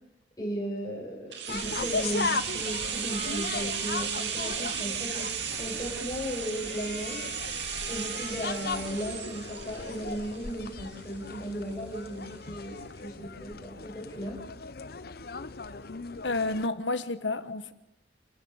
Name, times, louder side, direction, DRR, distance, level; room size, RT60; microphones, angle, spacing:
voice 1, 0.4-7.2 7.9-14.4, right 1 dB, 20° left, 7.6 m, -36 dB
sound 1, 1.3-11.1 11.4-11.5, right 7 dB, 75° right, 2.5 m, -35 dB
sound 2, 1.5-16.7, left 4 dB, 55° left, 0.8 m, -37 dB
voice 2, 16.2-17.7, left 2 dB, 90° left, 1.3 m, -30 dB
28.0 x 16.5 x 7.4 m
head